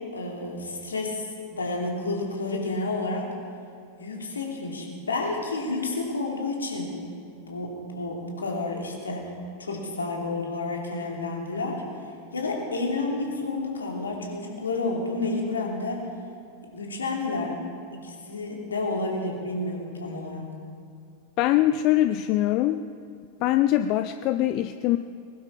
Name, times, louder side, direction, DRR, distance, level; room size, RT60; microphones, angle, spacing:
voice 1, 0.1-1.3 1.5-3.3 4.0-6.9 7.4-9.3 9.6-11.8 12.3-16.1 16.7-17.6 17.9-20.5, left 3 dB, 75° left, 0 dB, 2.9 m, -30 dB
voice 2, 21.4-22.8 23.4-25.0, left 14 dB, 40° left, 10 dB, 0.4 m, -22 dB
21.0 x 12.0 x 4.9 m, 2.5 s
figure-of-eight pair, 90°, 0 cm